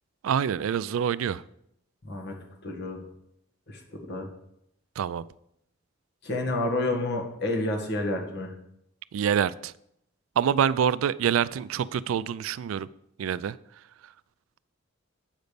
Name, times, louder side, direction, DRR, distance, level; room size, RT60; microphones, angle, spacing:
voice 1, 0.2-1.4 5.0-5.2 9.1-9.7 10.4-12.9 13.2-13.6 14.0-14.1, right 8 dB, 90° right, 19 dB, 0.3 m, -26 dB
voice 2, 2.0-2.4 2.6-3.0 3.7-4.3 6.2-8.5, left 2 dB, 55° left, 2 dB, 1.6 m, -29 dB
8.1 x 5.2 x 6.7 m, 0.77 s
head